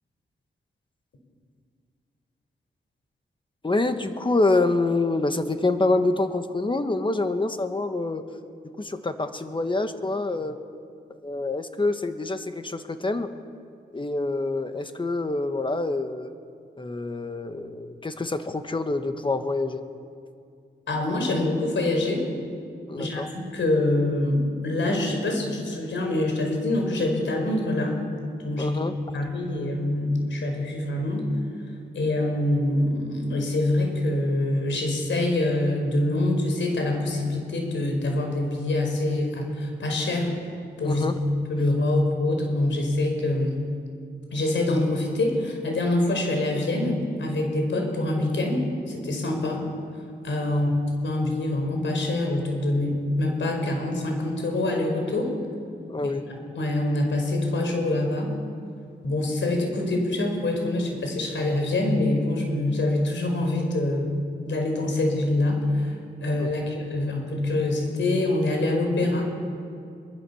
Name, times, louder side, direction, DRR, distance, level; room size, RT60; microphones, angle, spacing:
voice 1, 3.6-8.2 8.8-10.6 11.2-13.3 13.9-16.3 16.8-19.9 22.9-23.3 28.6-29.0 40.8-41.2 50.5-50.7 55.9-56.2 66.4-66.5, left 2 dB, 25° left, 8 dB, 1.5 m, -26 dB
voice 2, 20.9-22.2 23.0-28.0 28.4-28.8 29.1-31.2 31.9-40.3 40.8-41.1 41.5-43.6 44.3-49.7 50.2-50.7 51.0-55.3 56.3-58.3 59.0-64.1 64.4-69.2, left 2 dB, 85° left, 2 dB, 5.4 m, -25 dB
23.0 x 23.0 x 7.2 m, 2.4 s
wide cardioid pair, 100°, 19 cm